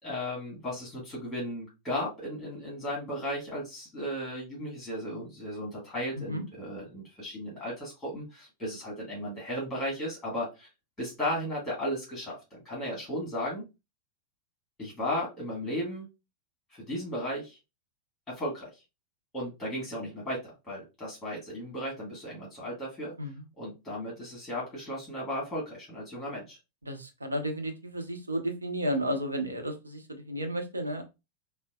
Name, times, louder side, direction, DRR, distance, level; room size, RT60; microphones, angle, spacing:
voice 1, 0.0-10.7 11.0-13.6 14.8-16.1 16.7-17.6 18.3-18.7 19.3-23.1 23.6-26.6, equal, 10° left, -4 dB, 1.6 m, -35 dB
voice 2, 26.8-31.0, equal, 80° right, 5 dB, 0.7 m, -33 dB
3.8 x 2.0 x 2.3 m, 0.25 s
figure-of-eight pair, 90°, 0 cm